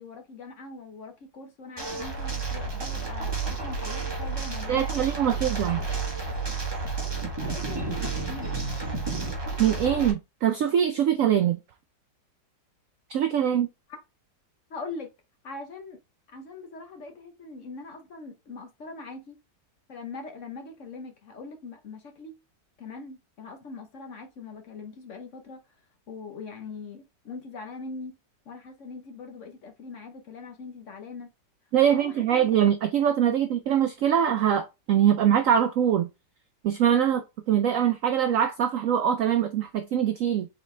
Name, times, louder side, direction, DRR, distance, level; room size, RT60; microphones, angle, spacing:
voice 1, 0.0-5.0 7.4-8.5 14.7-15.1 15.4-16.0 16.3-19.4 19.9-22.3 22.8-25.6 26.1-28.2 28.5-31.3 31.9-32.5 33.5-33.6, left 3 dB, 55° left, 1.0 m, -41 dB
sound 1, 1.8-10.1, right 4 dB, 20° right, 0.9 m, -31 dB
voice 2, 4.7-5.8 9.6-11.6 13.1-13.7 31.7-36.1 36.6-40.5, right 9 dB, 80° right, 0.7 m, -23 dB
4.2 x 3.9 x 3.2 m
omnidirectional pair, 1.9 m